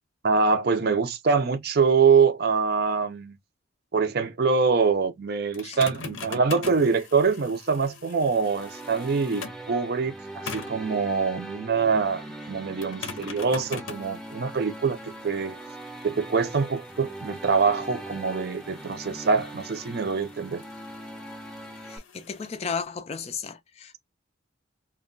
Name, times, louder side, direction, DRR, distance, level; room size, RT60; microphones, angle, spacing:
voice 1, 0.2-3.3 3.9-15.6 16.0-20.6, right 5 dB, 50° right, 0.5 m, -24 dB
sound 1, 5.5-9.7 10.5-10.9 12.8-22.5, left 5 dB, 75° left, 0.6 m, -43 dB
sound 2, 8.3-22.0, right 1 dB, ahead, 0.7 m, -41 dB
voice 2, 21.8-24.0, left 6 dB, 30° left, 0.3 m, -34 dB
2.2 x 2.2 x 3.7 m
head